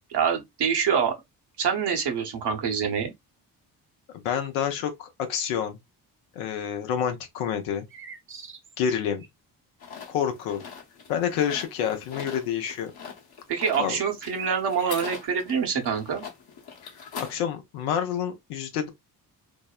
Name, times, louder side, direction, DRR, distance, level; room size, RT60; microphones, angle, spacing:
voice 1, 0.1-1.1 1.6-3.1 13.5-16.2, right 7 dB, 60° right, 1.0 m, -25 dB
voice 2, 4.2-5.8 6.4-7.9 8.8-9.2 10.1-10.6 11.1-12.9 13.8-14.0 17.2-18.9, left 8 dB, 85° left, 0.7 m, -28 dB
sound 1, 7.9-9.3 13.7-15.3, right 4 dB, 25° right, 0.7 m, -41 dB
sound 2, 9.8-17.4, left 6 dB, 55° left, 1.0 m, -42 dB
2.7 x 2.1 x 2.3 m
hypercardioid pair, 45°, 46 cm